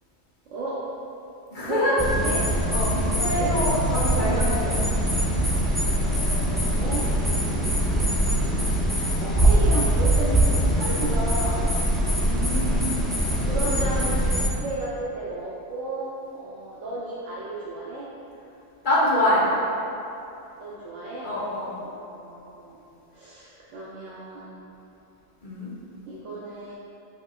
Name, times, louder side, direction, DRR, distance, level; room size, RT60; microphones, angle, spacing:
voice 1, 0.5-0.8 1.6-2.0 2.2-2.4 3.0-3.6 4.1-4.7 6.0-7.1 7.5-8.1 8.7-11.7 12.8-14.1 14.6-18.1 20.6-21.3 21.8-22.9 23.1-24.6 26.1-26.7, right 2 dB, 80° right, -7 dB, 1.2 m, -34 dB
voice 2, 1.5-2.0 2.7-4.8 7.3-7.6 12.2-13.0 18.8-19.5 21.2-21.7 25.4-25.7, left 1 dB, 40° left, -7 dB, 1.6 m, -25 dB
sound 1, 2.0-14.5, right 1 dB, ahead, 0.8 m, -23 dB
8.3 x 6.0 x 2.4 m, 2.8 s
omnidirectional pair, 1.2 m